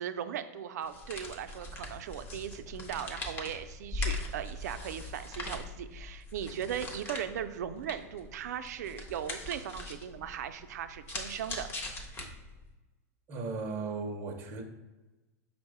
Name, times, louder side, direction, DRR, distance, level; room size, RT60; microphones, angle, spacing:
voice 1, 0.0-11.7, right 9 dB, 90° right, 10 dB, 0.4 m, -38 dB
sound 1, 0.8-12.7, left 3 dB, 25° left, 0.6 m, -41 dB
voice 2, 13.3-14.6, right 3 dB, 25° right, 1 dB, 0.5 m, -36 dB
5.3 x 2.0 x 4.7 m, 1.1 s
supercardioid pair, 160°, 9 cm